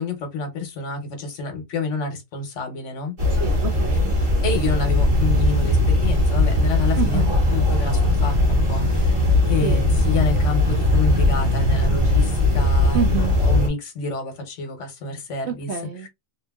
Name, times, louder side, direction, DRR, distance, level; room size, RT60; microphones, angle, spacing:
voice 1, 0.0-3.2 4.4-7.2 7.5-15.7 16.0-16.1, left 3 dB, 60° left, 1.1 m, -29 dB
sound 1, 3.2-13.7, left 2 dB, 45° right, 1.3 m, -19 dB
voice 2, 3.3-4.2 7.0-7.3 9.6-9.8 12.9-13.4 15.5-16.1, right 8 dB, 65° right, 0.7 m, -27 dB
2.8 x 2.6 x 2.2 m
omnidirectional pair, 1.5 m